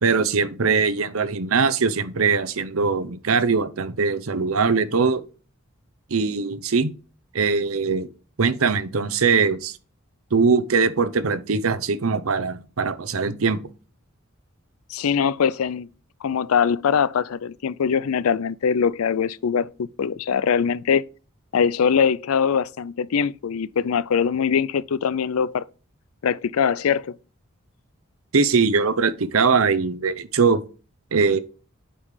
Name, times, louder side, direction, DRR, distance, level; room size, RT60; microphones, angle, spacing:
voice 1, 0.0-5.2 6.1-6.9 7.3-8.1 8.4-9.8 10.3-13.6 28.3-30.6 31.1-31.4, right 5 dB, 80° right, 0.8 m, -21 dB
voice 2, 14.9-15.9 16.2-21.0 21.5-25.6 26.2-27.2, left 7 dB, 85° left, 0.4 m, -22 dB
8.5 x 5.2 x 3.2 m
head